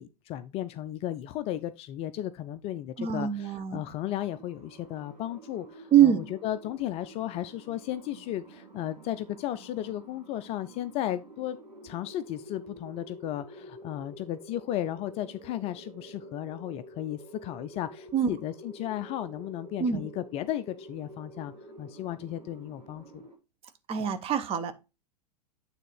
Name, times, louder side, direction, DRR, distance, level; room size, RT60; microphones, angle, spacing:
voice 1, 0.0-11.6 11.8-21.5 21.8-23.2, left 12 dB, 30° left, 0.4 m, -35 dB
voice 2, 3.0-3.8 5.9-6.2 18.1-18.4 19.8-20.1 23.9-24.7, right 9 dB, 25° right, 1.0 m, -24 dB
sound 1, 4.2-23.4, right 1 dB, 85° right, 1.8 m, -49 dB
9.1 x 3.6 x 4.3 m
figure-of-eight pair, 95°, 21 cm